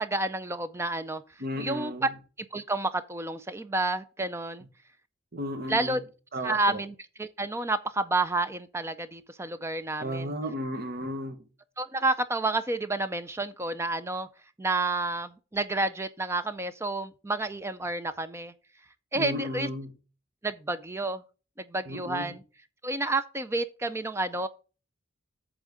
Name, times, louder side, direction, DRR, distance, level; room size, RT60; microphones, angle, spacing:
voice 1, 0.0-1.2 1.6-2.1 2.5-4.6 5.7-6.0 6.4-10.3 11.8-14.3 14.6-18.5 19.1-19.7 20.4-21.2 21.6-22.4 22.8-24.5, right 2 dB, 15° right, 0.4 m, -30 dB
voice 2, 1.4-2.1 5.3-6.0 6.3-6.8 10.0-11.4 19.1-19.9 21.9-22.4, equal, 50° right, 1.1 m, -34 dB
8.4 x 3.6 x 6.6 m
head